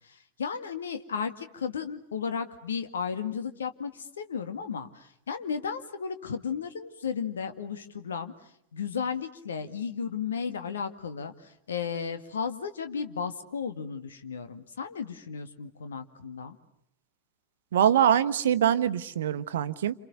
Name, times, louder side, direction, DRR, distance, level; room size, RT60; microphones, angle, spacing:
voice 1, 0.1-8.3 8.7-11.3 11.7-16.6, left 6 dB, 65° left, 2.1 m, -34 dB
voice 2, 17.7-19.9, right 9 dB, 60° right, 1.1 m, -23 dB
29.0 x 27.5 x 6.7 m
figure-of-eight pair, 90°, 0 cm